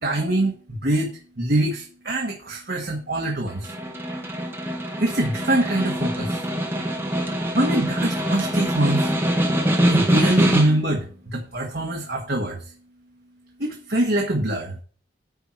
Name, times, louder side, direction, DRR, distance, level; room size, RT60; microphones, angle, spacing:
voice 1, 0.0-0.5 0.8-3.7 5.0-6.4 7.5-9.1 9.9-12.6 13.6-14.7, right 1 dB, 55° right, 0 dB, 1.4 m, -24 dB
Snare drum, 3.5-11.0, equal, 15° right, 1.4 m, -24 dB
9.8 x 4.5 x 6.2 m, 0.42 s
head